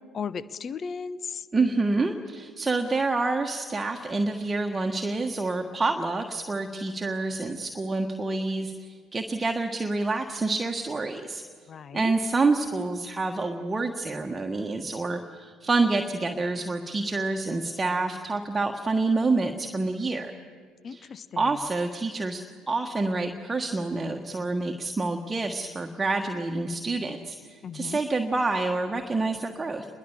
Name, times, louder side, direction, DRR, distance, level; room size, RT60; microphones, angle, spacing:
voice 1, 0.0-1.5 11.7-12.1 20.8-21.6 27.6-28.0, left 6 dB, 40° left, 18 dB, 0.8 m, -36 dB
voice 2, 1.5-11.4 11.9-20.3 20.9-21.1 21.4-29.9, right 3 dB, 20° right, 3 dB, 1.5 m, -27 dB
26.5 x 21.5 x 7.4 m, 2.1 s
figure-of-eight pair, 55°, 0 cm